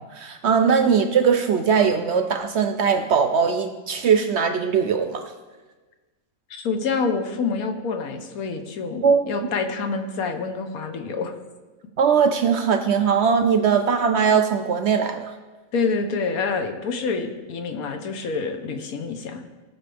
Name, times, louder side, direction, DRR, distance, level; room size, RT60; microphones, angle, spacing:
voice 1, 0.0-5.2 9.0-9.3 12.0-15.3, right 6 dB, 65° right, 7 dB, 0.7 m, -20 dB
voice 2, 6.5-11.3 15.7-19.4, left 4 dB, 80° left, 6 dB, 1.3 m, -27 dB
16.5 x 6.2 x 3.4 m, 1.3 s
omnidirectional pair, 1.5 m